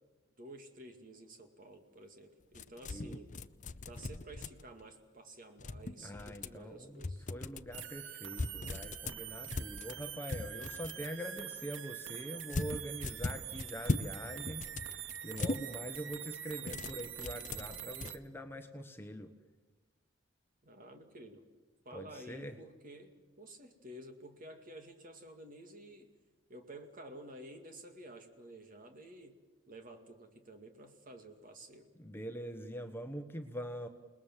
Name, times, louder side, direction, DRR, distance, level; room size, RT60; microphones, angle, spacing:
voice 1, 0.4-3.3 3.8-7.3 20.6-21.4 21.8-26.1 26.5-29.4 29.7-31.9, right 1 dB, 45° right, 5 dB, 2.4 m, -52 dB
sound 1, 2.5-4.8 5.6-6.6 7.0-7.9 8.3-11.0 12.5-14.1 14.4-15.6 16.6-18.1, left 2 dB, 40° left, 0.7 m, -39 dB
voice 2, 2.8-3.2 6.0-19.3 21.9-22.6 31.9-33.9, equal, 10° left, 6 dB, 1.1 m, -44 dB
sound 2, 7.7-18.2, right 10 dB, 85° right, 1.2 m, -45 dB
28.5 x 20.5 x 7.4 m, 1.2 s
head